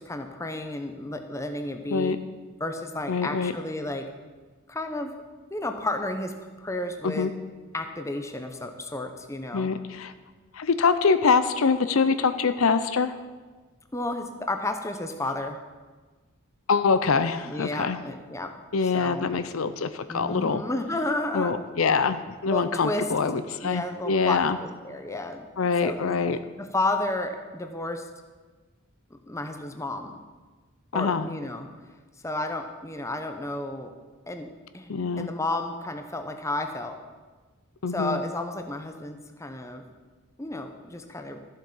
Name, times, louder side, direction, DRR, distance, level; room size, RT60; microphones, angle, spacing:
voice 1, 0.0-2.1 2.6-4.1 4.7-5.2 5.5-7.3 7.7-9.7 13.9-15.6 17.4-18.5 18.9-19.3 20.1-21.6 22.5-23.1 23.3-25.5 25.8-26.1 26.6-28.1 29.1-30.2 30.9-31.7 32.2-33.9 34.3-34.5 34.7-37.0 37.9-39.8 40.4-41.4, left 2 dB, 15° left, 6 dB, 0.8 m, -32 dB
voice 2, 3.1-3.5 7.0-7.3 9.5-10.1 10.5-13.2 16.7-18.0 18.7-20.6 21.3-24.6 25.6-26.4 30.9-31.3 34.9-35.3 37.8-38.2, left 5 dB, 80° left, 11 dB, 0.6 m, -24 dB
13.5 x 7.6 x 5.5 m, 1.3 s
head